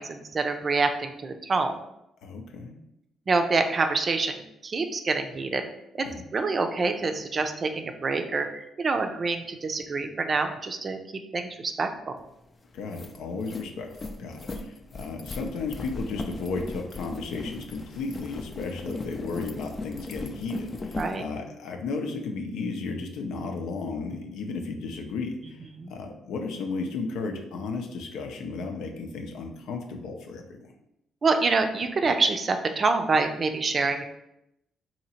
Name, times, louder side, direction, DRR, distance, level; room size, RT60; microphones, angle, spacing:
voice 1, 0.0-1.8 3.3-5.7 5.9-6.0 6.3-11.0 11.3-11.9 14.5-14.7 21.0-21.2 25.8-25.9 31.2-34.0, right 3 dB, 40° right, 6 dB, 0.4 m, -26 dB
voice 2, 2.2-2.8 6.0-6.2 12.7-13.9 14.2-30.7, left 4 dB, 85° left, 3 dB, 0.6 m, -34 dB
sound 1, 12.3-12.4 12.7-21.2, left 3 dB, 30° left, 0.4 m, -37 dB
2.9 x 2.8 x 4.3 m, 0.83 s
cardioid pair, 90°, 0 cm